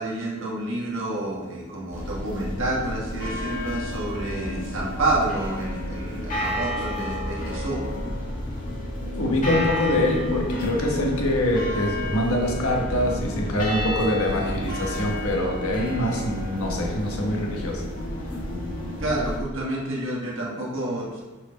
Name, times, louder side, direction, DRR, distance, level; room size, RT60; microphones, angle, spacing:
voice 1, 0.0-7.8 19.0-21.2, right 2 dB, 65° right, -3 dB, 1.8 m, -29 dB
sound 1, 1.9-19.4, left 1 dB, 40° left, 1.9 m, -30 dB
voice 2, 9.1-17.8, left 1 dB, 85° left, -1 dB, 1.5 m, -24 dB
6.1 x 4.7 x 5.2 m, 1.2 s
head